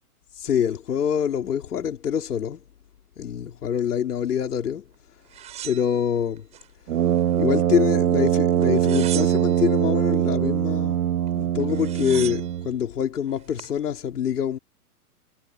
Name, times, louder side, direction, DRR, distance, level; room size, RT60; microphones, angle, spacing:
voice 1, 0.3-2.6 3.2-4.8 5.6-6.5 7.4-11.1 11.3-14.6, left 8 dB, 80° left, 3.7 m, -25 dB
sound 1, 5.3-6.7 7.1-7.9 8.6-9.7 11.3-11.4 11.6-12.6 13.3-13.8, right 11 dB, 15° right, 7.6 m, -38 dB
Brass instrument, 6.9-12.8, right 11 dB, 70° right, 1.2 m, -22 dB
hypercardioid pair, 175°, 46 cm